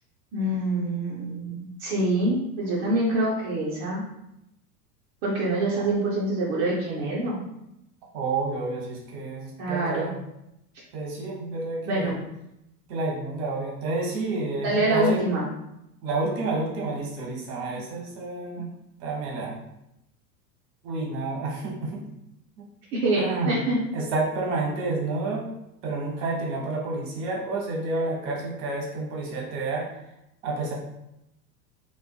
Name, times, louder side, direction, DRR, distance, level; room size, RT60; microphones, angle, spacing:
voice 1, 0.3-4.0 5.2-7.4 9.6-10.1 11.9-12.2 14.6-15.4 22.9-23.8, right 2 dB, 25° right, -7 dB, 0.5 m, -25 dB
voice 2, 8.1-10.1 10.9-12.1 12.9-15.3 16.0-18.7 19.0-19.5 20.8-22.0 22.6-22.7 23.2-23.6 23.9-25.5 25.8-30.0 30.4-30.7, right 3 dB, 40° right, -2 dB, 0.9 m, -29 dB
2.5 x 2.2 x 2.3 m, 0.84 s
figure-of-eight pair, 90°, 49 cm